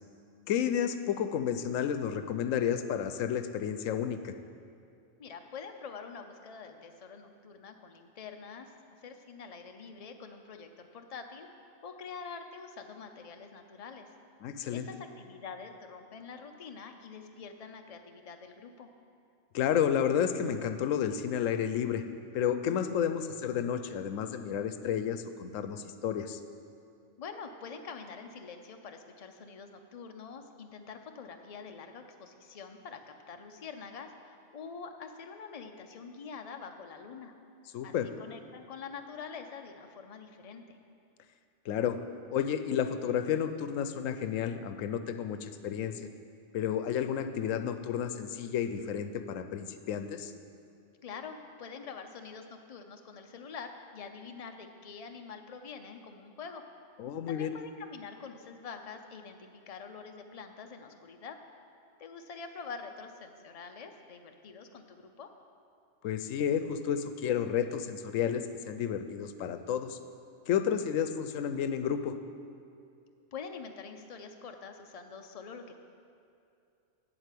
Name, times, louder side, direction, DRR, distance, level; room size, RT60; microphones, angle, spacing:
voice 1, 0.5-4.3 14.4-14.9 19.5-22.0 22.3-26.4 37.7-38.0 41.7-42.0 42.3-46.1 46.5-50.3 57.0-57.5 66.0-70.0 70.5-72.2, left 8 dB, 90° left, 9 dB, 1.0 m, -31 dB
voice 2, 5.2-8.7 9.0-11.5 11.8-14.1 14.7-18.9 27.2-37.3 37.8-40.8 51.0-56.6 57.3-61.4 62.0-65.3 73.3-75.7, left 5 dB, 35° left, 5 dB, 0.6 m, -45 dB
7.9 x 7.9 x 8.4 m, 2.5 s
omnidirectional pair, 1.3 m